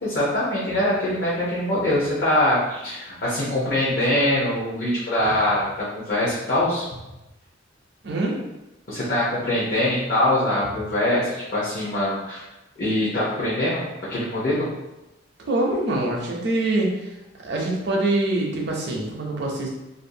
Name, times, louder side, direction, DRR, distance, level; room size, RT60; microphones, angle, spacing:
voice 1, 0.0-6.8 8.9-12.4 12.8-13.8 14.1-14.7, left 1 dB, 50° left, -8 dB, 0.7 m, -23 dB
voice 2, 8.0-8.4 15.5-16.9 17.4-19.7, right 2 dB, 60° right, -1 dB, 0.6 m, -24 dB
2.6 x 2.3 x 2.6 m, 0.97 s
head